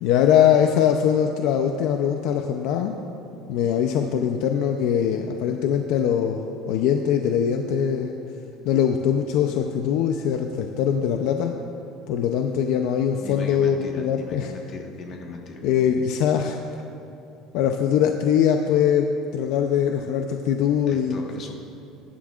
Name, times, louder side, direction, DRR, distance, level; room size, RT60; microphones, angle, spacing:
voice 1, 0.0-3.0 3.5-8.1 8.6-11.5 12.1-14.5 15.6-16.6 17.5-21.2, left 8 dB, 60° left, 4 dB, 0.6 m, -22 dB
voice 2, 13.2-15.6 20.9-21.5, left 3 dB, 35° left, 0 dB, 1.4 m, -38 dB
21.0 x 11.0 x 2.5 m, 2.8 s
cardioid pair, 170°, 0 cm